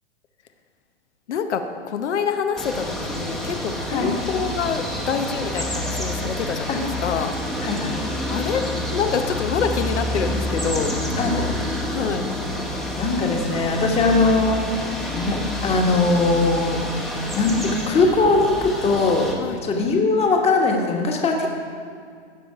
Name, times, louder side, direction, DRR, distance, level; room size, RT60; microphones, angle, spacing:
voice 1, 1.3-7.3 8.3-8.7 8.9-10.9 11.2-11.5 11.9-12.2 19.4-19.6, left 6 dB, 85° left, 7 dB, 0.9 m, -26 dB
sound 1, 2.6-19.3, left 1 dB, ahead, 0.9 m, -28 dB
voice 2, 7.6-8.0 11.2-11.6 13.0-14.7 15.1-16.8 17.3-19.3 19.6-21.5, left 3 dB, 20° left, 1 dB, 1.3 m, -20 dB
15.5 x 5.6 x 4.7 m, 2.1 s
hypercardioid pair, 135°, 34 cm